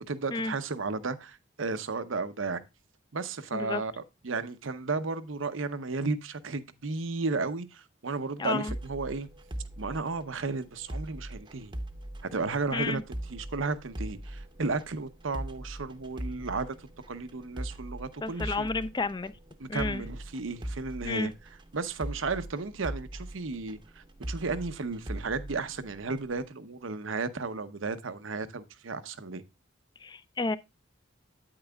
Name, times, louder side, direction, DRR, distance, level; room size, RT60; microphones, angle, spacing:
voice 1, 0.0-2.6 3.1-9.3 9.8-11.7 12.2-13.0 13.3-18.7 19.6-21.3 21.7-29.4, right 3 dB, 80° right, 0.8 m, -34 dB
voice 2, 3.5-3.8 8.4-8.7 12.7-13.0 18.2-19.3 19.7-20.0 21.0-21.3 30.0-30.6, left 3 dB, 20° left, 0.4 m, -31 dB
sound 1, 8.7-26.4, right 1 dB, 25° right, 0.7 m, -41 dB
8.9 x 8.7 x 2.3 m
head